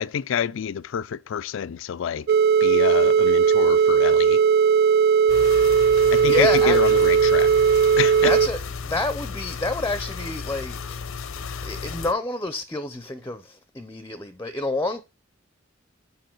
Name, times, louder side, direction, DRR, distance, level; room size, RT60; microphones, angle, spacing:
voice 1, 0.0-2.3 2.6-4.4 6.1-7.5 8.0-8.3, left 8 dB, 70° left, 0.4 m, -27 dB
sound 1, 2.3-8.5, right 6 dB, 45° right, 0.3 m, -18 dB
sound 2, 5.3-12.1, left 5 dB, 90° left, 0.8 m, -34 dB
voice 2, 6.0-7.2 8.2-11.0 11.6-15.0, left 2 dB, 15° left, 0.5 m, -29 dB
7.7 x 5.4 x 4.5 m
head